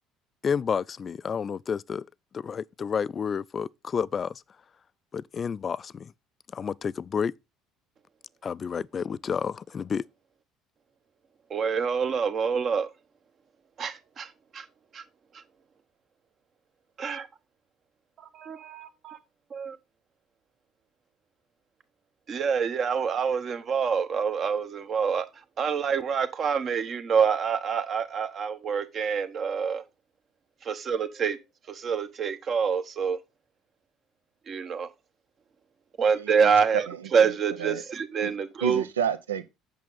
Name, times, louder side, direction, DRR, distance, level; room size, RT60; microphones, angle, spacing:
voice 1, 0.4-2.0 2.3-4.4 5.1-6.1 6.5-7.3 8.4-10.0, left 6 dB, 35° left, 0.4 m, -30 dB
voice 2, 11.5-12.9 13.8-14.6 14.9-15.0 15.3-15.4 17.0-17.3 18.2-19.2 19.5-19.8 22.3-25.3 25.6-29.8 30.6-31.4 31.7-33.2 34.5-34.9 36.0-38.8, right 6 dB, 40° right, 1.0 m, -26 dB
voice 3, 36.2-36.5 36.9-37.8 38.2-38.3 38.6-39.5, right 8 dB, 75° right, 0.6 m, -31 dB
8.4 x 6.3 x 4.0 m
figure-of-eight pair, 55°, 0 cm